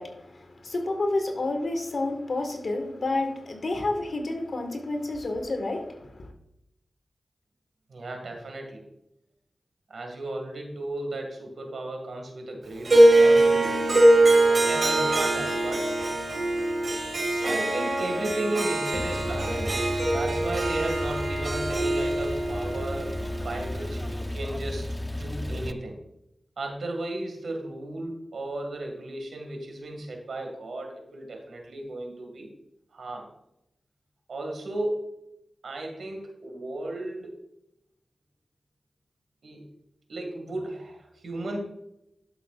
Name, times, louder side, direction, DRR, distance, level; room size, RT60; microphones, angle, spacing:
voice 1, 0.0-6.3, left 2 dB, 65° left, 4 dB, 1.7 m, -30 dB
voice 2, 7.9-8.9 9.9-14.0 14.5-15.9 17.4-19.8 20.1-26.0 26.6-32.5 32.9-33.3 34.3-35.1 35.6-37.3 39.4-39.7 40.1-41.6, right 2 dB, 85° right, 2 dB, 2.1 m, -35 dB
Harp, 12.8-24.1, right 1 dB, 65° right, 3.0 m, -23 dB
Male speech man speaking / Car / Idling, 18.9-25.7, left 1 dB, 15° left, 0.5 m, -34 dB
12.0 x 6.7 x 2.5 m, 0.83 s
cardioid pair, 55°, 0 cm